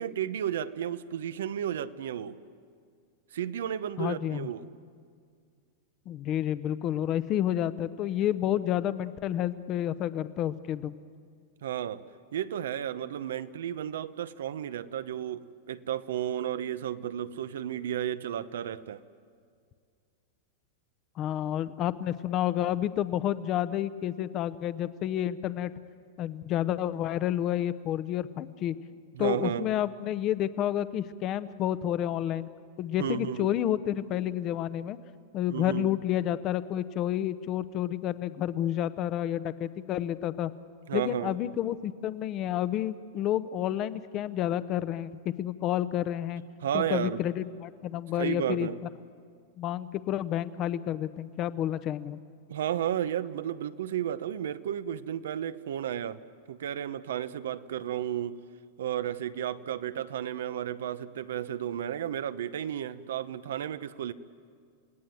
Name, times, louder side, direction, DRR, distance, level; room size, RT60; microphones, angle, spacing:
voice 1, 0.0-2.4 3.3-4.7 11.6-12.0 12.3-19.0 29.1-29.7 33.0-33.5 35.5-35.9 40.9-41.3 46.6-47.2 48.2-48.8 52.5-56.2 56.5-58.4 58.8-64.1, right 10 dB, 85° right, 13 dB, 0.9 m, -33 dB
voice 2, 4.0-4.5 6.1-10.9 21.2-25.7 26.2-28.8 29.2-32.5 32.8-35.0 35.3-40.5 40.9-46.4 46.7-48.7 49.6-52.2, left 11 dB, 30° left, 15 dB, 0.7 m, -30 dB
29.5 x 17.5 x 9.1 m, 2.2 s
supercardioid pair, 165°, 0 cm